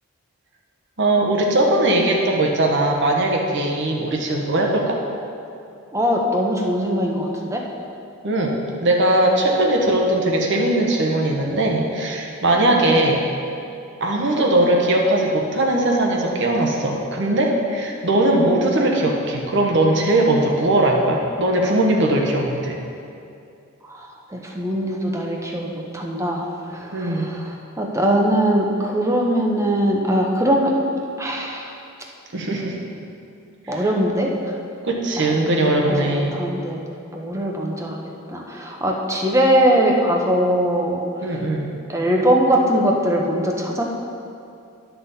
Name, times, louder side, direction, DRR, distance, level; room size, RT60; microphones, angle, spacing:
voice 1, 1.0-5.0 8.2-13.2 14.0-22.8 26.9-27.3 32.3-32.8 33.7-33.9 34.8-36.4 41.2-41.7, right 1 dB, 55° right, 0 dB, 1.1 m, -19 dB
voice 2, 5.9-7.6 12.7-12.8 23.9-30.8 31.2-31.7 33.7-34.3 35.2-36.8 37.1-38.0 38.3-41.0 41.9-43.8, equal, 15° right, 0 dB, 0.8 m, -21 dB
11.5 x 5.8 x 4.1 m, 2.5 s
head